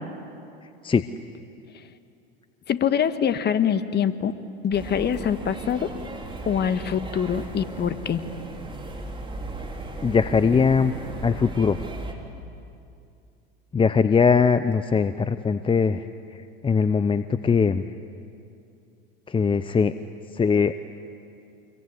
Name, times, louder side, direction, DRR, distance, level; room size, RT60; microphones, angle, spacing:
voice 1, 2.7-4.3 4.6-5.9 6.4-8.2, left 8 dB, 35° left, 10 dB, 1.6 m, -24 dB
sound 1, 4.7-12.1, right 2 dB, 15° right, 3.9 m, -36 dB
voice 2, 10.0-10.9 11.2-11.8 13.7-16.0 16.3-17.9 19.3-19.9 20.3-20.8, left 5 dB, 15° left, 12 dB, 0.7 m, -21 dB
26.5 x 22.5 x 9.8 m, 2.6 s
hypercardioid pair, 85°, 29 cm